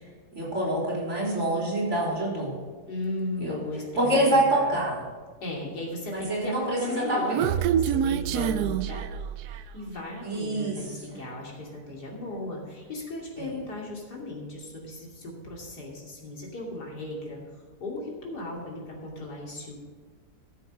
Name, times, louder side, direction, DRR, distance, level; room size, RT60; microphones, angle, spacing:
voice 1, 0.3-2.5 3.4-3.6 4.0-5.0 6.1-7.2 10.2-10.8 11.1-11.2 13.4-13.5, right 1 dB, 40° right, -4 dB, 4.0 m, -26 dB
voice 2, 2.9-4.8 5.4-9.1 9.4-19.7, left 2 dB, 70° left, -2 dB, 3.2 m, -36 dB
Human voice, 6.8-9.8, right 9 dB, 75° right, 1.0 m, -27 dB
13.5 x 7.0 x 6.1 m, 1.5 s
omnidirectional pair, 1.8 m